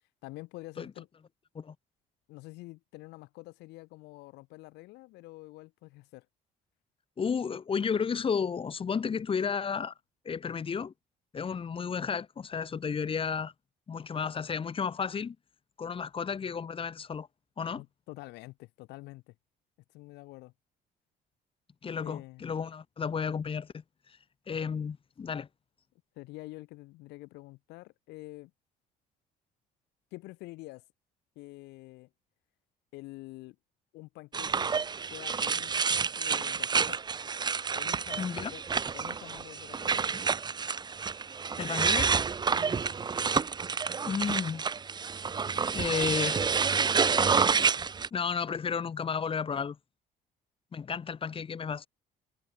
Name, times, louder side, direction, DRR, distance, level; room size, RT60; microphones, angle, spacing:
voice 1, 0.2-1.1 2.3-6.3 17.8-19.3 19.9-20.5 22.0-22.6 26.2-28.5 30.1-30.8 31.3-32.1 32.9-33.6 33.9-34.7 35.1-37.0 37.7-38.6 38.9-40.1 42.5-42.7, left 21 dB, 90° left, 1.3 m, -47 dB
voice 2, 7.2-9.9 10.2-10.9 11.3-13.5 13.9-15.4 15.8-17.3 17.6-17.8 21.8-23.8 24.5-25.5 38.2-38.5 41.6-42.1 44.0-44.6 45.7-46.4 48.1-49.8 50.7-51.9, left 6 dB, 30° left, 1.5 m, -32 dB
sound 1, 34.3-48.1, right 5 dB, 25° right, 0.7 m, -29 dB
cardioid pair, 110°, 17 cm